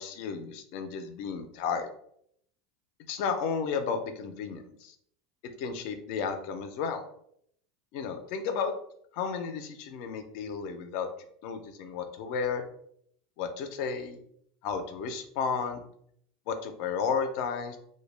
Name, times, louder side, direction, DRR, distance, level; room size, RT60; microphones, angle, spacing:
voice 1, 0.0-1.9 3.1-4.9 5.6-7.0 7.9-8.7 9.1-11.1 11.4-12.6 13.4-14.2 14.6-15.8 16.5-17.8, left 6 dB, 55° left, 7 dB, 0.4 m, -33 dB
2.1 x 2.0 x 3.1 m, 0.68 s
supercardioid pair, 150°, 2 cm